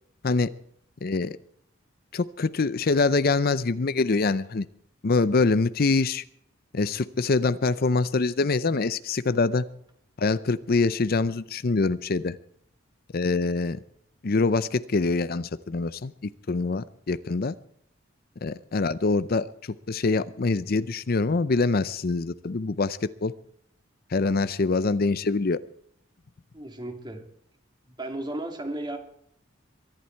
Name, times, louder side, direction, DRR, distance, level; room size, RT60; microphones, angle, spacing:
voice 1, 1.0-1.4 2.1-4.7 5.0-6.2 6.7-9.7 10.2-12.4 13.1-13.8 14.2-16.1 16.5-17.5 18.4-19.5 19.9-23.3 24.1-25.6, left 3 dB, 50° left, 15 dB, 0.5 m, -24 dB
voice 2, 26.5-27.2 28.0-29.0, right 1 dB, 20° right, 5 dB, 2.4 m, -34 dB
23.5 x 11.5 x 4.5 m, 0.67 s
head